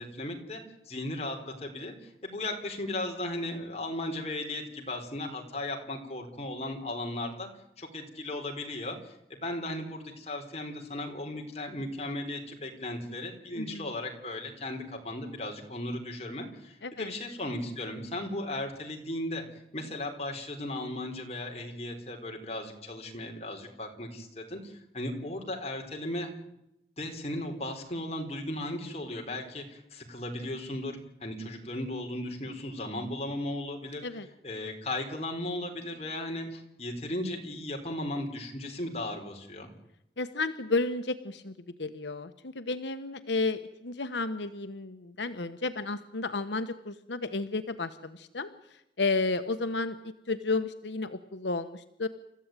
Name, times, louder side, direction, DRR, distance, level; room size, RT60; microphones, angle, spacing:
voice 1, 0.0-7.5 7.8-19.4 19.7-26.3 27.0-34.0 34.4-39.7, left 1 dB, 35° left, 2 dB, 4.2 m, -36 dB
voice 2, 13.6-13.9 16.8-17.1 34.0-34.3 40.2-41.5 41.8-48.5 49.0-52.1, left 3 dB, 85° left, 9 dB, 1.1 m, -32 dB
29.0 x 14.5 x 9.1 m, 0.83 s
head